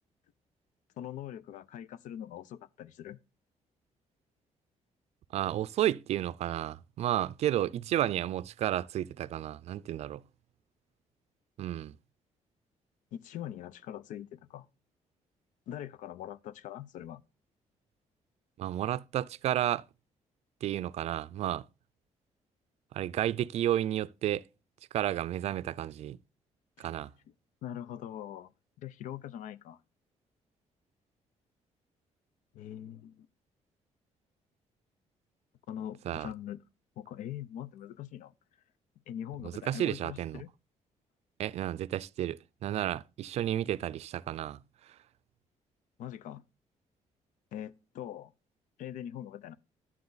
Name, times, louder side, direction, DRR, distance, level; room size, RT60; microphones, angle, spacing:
voice 1, 1.0-3.2 13.1-14.7 15.7-17.2 26.8-26.9 27.6-28.5 28.8-29.8 32.5-33.3 35.7-36.6 37.0-38.3 39.1-40.5 46.0-46.4 47.5-48.3 48.8-49.6, left 10 dB, 90° left, 0.7 m, -42 dB
voice 2, 5.3-10.2 11.6-11.9 18.6-19.8 20.6-21.6 22.9-24.4 24.9-26.2 26.8-27.1 36.1-36.3 39.4-40.4 41.4-44.6, right 12 dB, 60° right, 0.4 m, -32 dB
11.5 x 7.3 x 4.0 m
cardioid pair, 160°, 13 cm